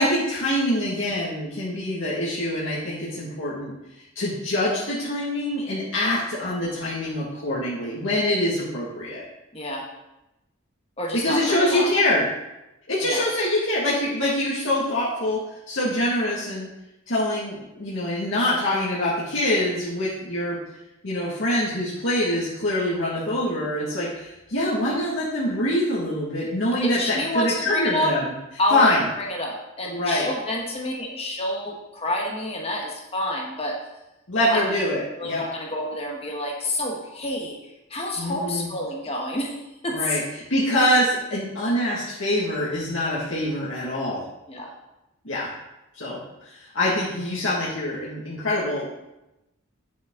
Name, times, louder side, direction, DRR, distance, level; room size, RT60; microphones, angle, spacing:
voice 1, 0.0-3.7 4.2-9.3 11.2-12.2 12.9-15.4 15.7-16.7 17.1-20.6 21.0-28.3 28.7-29.1 29.8-30.3 34.3-35.4 38.2-38.7 39.9-40.2 40.5-44.2 45.2-45.5 45.9-46.2 46.4-48.9, left 1 dB, 70° left, -7 dB, 1.9 m, -24 dB
voice 2, 9.5-9.9 11.0-11.9 13.0-13.2 26.8-28.1 28.6-28.9 29.2-33.8 34.5-34.7 35.2-37.6 37.9-39.6 39.8-40.2 44.5-44.7, left 1 dB, 30° left, -1 dB, 1.3 m, -28 dB
8.8 x 7.1 x 3.8 m, 0.95 s
head